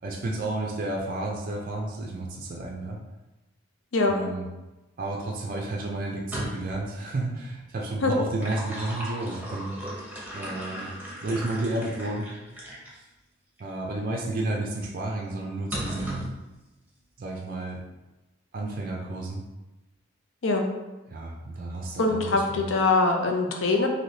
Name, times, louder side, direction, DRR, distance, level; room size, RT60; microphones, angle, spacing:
voice 1, 0.0-3.0 4.1-4.5 5.0-9.8 10.3-10.9 11.2-12.3 13.6-16.2 17.2-17.8 18.5-19.4 21.1-22.7, right 2 dB, 45° right, -2 dB, 0.4 m, -31 dB
sound 1, 6.1-6.8 8.1-13.0 13.6-13.7 15.7-16.4, right 1 dB, 10° right, 0.7 m, -36 dB
voice 2, 22.0-23.9, left 3 dB, 70° left, 2 dB, 0.5 m, -23 dB
3.2 x 2.7 x 2.7 m, 1.1 s
head